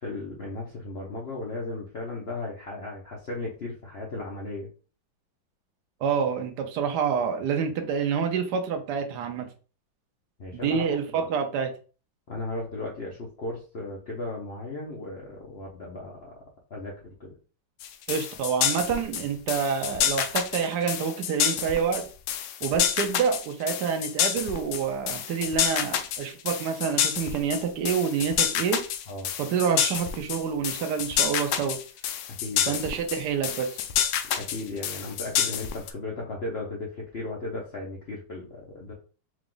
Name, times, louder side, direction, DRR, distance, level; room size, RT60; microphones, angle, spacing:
voice 1, 0.0-4.7 10.4-10.9 12.3-16.3 16.7-17.3 29.1-29.3 32.4-32.7 34.3-38.9, left 2 dB, 50° left, -2 dB, 0.8 m, -36 dB
voice 2, 6.0-9.5 10.5-11.7 18.1-22.0 22.6-28.8 29.4-31.8 32.7-33.7, right 6 dB, 65° right, 5 dB, 1.2 m, -27 dB
sound 1, 17.8-35.9, left 9 dB, 75° left, 1.2 m, -28 dB
4.9 x 2.4 x 3.8 m, 0.37 s
omnidirectional pair, 2.1 m